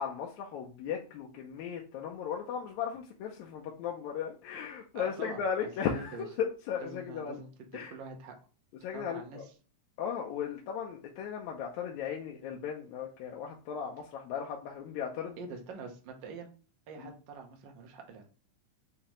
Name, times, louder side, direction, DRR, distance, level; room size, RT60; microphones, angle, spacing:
voice 1, 0.0-7.4 7.7-7.9 8.8-9.5 10.0-15.4 17.0-17.1, left 7 dB, 80° left, -1 dB, 1.9 m, -36 dB
voice 2, 4.9-5.4 5.9-6.3 6.8-8.4 8.9-9.5 15.4-16.5 16.9-18.3, right 4 dB, 80° right, 3 dB, 1.0 m, -45 dB
5.7 x 3.1 x 3.0 m, 0.36 s
omnidirectional pair, 3.5 m